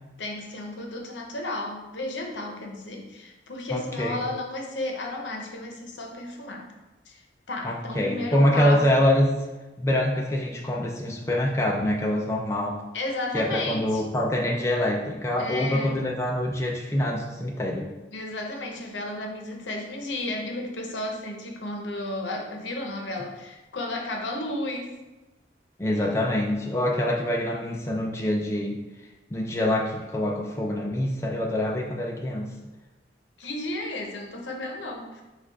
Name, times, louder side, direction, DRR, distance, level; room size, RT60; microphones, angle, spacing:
voice 1, 0.2-6.7 7.1-8.9 12.9-14.1 15.4-16.0 18.1-24.9 33.4-35.2, left 2 dB, 80° left, 1 dB, 0.7 m, -33 dB
voice 2, 3.7-4.2 7.6-9.3 9.8-12.8 13.3-17.9 25.8-28.8 29.3-32.5, left 1 dB, 15° left, -1 dB, 0.4 m, -25 dB
4.4 x 2.4 x 4.5 m, 1.1 s
head